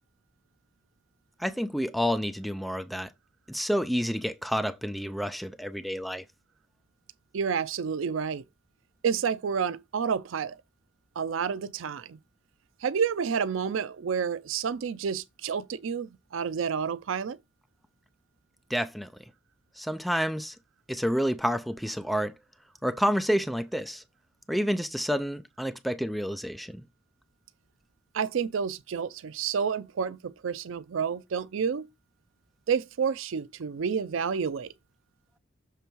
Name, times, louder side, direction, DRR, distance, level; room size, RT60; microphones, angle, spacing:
voice 1, 1.4-3.1 3.5-6.2 18.7-19.1 19.8-20.5 20.9-22.3 22.8-24.0 24.5-26.8, equal, ahead, 0.4 m, -29 dB
voice 2, 7.3-8.4 9.0-10.6 11.2-12.2 12.8-17.4 28.1-31.9 32.7-34.7, right 6 dB, 80° right, 0.4 m, -29 dB
6.8 x 3.4 x 4.5 m
head